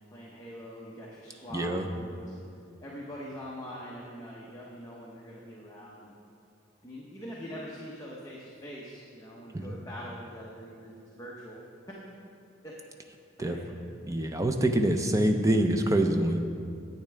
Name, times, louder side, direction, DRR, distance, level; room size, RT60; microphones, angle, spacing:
voice 1, 0.0-2.4 2.8-6.1 6.8-11.6 12.6-12.7 13.4-13.6, equal, 15° left, -4 dB, 0.8 m, -43 dB
voice 2, 1.5-1.8 9.5-9.7 13.4-13.6 14.1-16.4, right 1 dB, 15° right, 5 dB, 0.4 m, -25 dB
10.5 x 8.5 x 3.4 m, 2.5 s
head